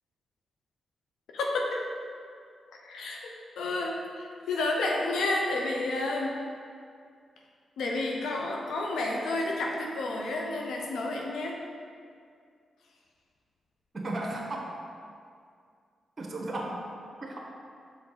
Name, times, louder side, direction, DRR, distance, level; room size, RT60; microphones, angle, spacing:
voice 1, 1.3-1.8 2.8-6.4 7.8-11.6, left 2 dB, 80° left, -1 dB, 0.7 m, -30 dB
voice 2, 13.9-14.7 16.2-16.8 17.2-17.4, right 2 dB, 45° right, -1 dB, 1.1 m, -34 dB
5.7 x 4.5 x 5.6 m, 2.3 s
supercardioid pair, 45°, 0 cm